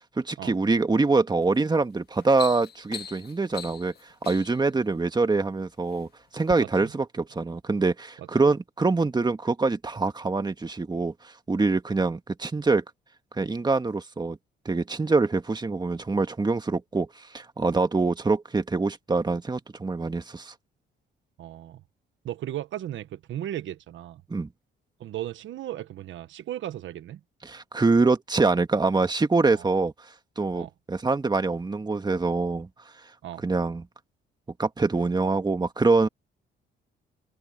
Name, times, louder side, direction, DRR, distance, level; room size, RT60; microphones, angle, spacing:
voice 1, 0.2-3.9 4.3-6.1 6.3-12.8 13.3-14.4 14.7-20.5 24.3-24.5 27.4-29.9 30.4-32.7 33.4-33.8 34.6-36.1, right 3 dB, 20° right, 1.8 m, -24 dB
sound 1, 1.4-1.7 2.0-4.7 5.5-6.0 6.4-6.6, left 8 dB, 55° left, 1.8 m, -40 dB
voice 2, 6.6-6.9 8.2-8.3 21.4-21.8 22.2-24.2 25.0-27.2 29.5-29.7 30.6-30.7 33.2-33.4, right 12 dB, 75° right, 1.3 m, -36 dB
open air
cardioid pair, 90°, 20 cm